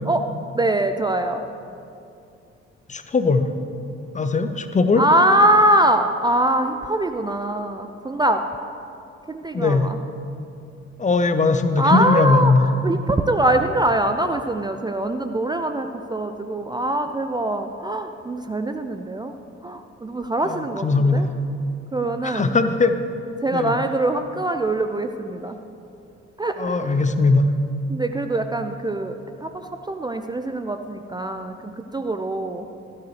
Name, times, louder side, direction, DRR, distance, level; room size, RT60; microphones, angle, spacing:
voice 1, 0.5-1.4 5.0-8.4 9.3-10.0 11.8-19.3 19.6-21.3 21.9-22.5 23.4-25.6 26.4-27.0 27.9-32.6, right 1 dB, 10° right, 6 dB, 0.5 m, -23 dB
voice 2, 2.9-3.5 4.1-5.0 9.5-9.9 11.0-12.7 20.5-21.3 22.2-23.0 23.5-23.7 26.6-27.5, left 3 dB, 20° left, 9 dB, 0.7 m, -19 dB
13.0 x 13.0 x 3.3 m, 2.6 s
figure-of-eight pair, 45°, 34 cm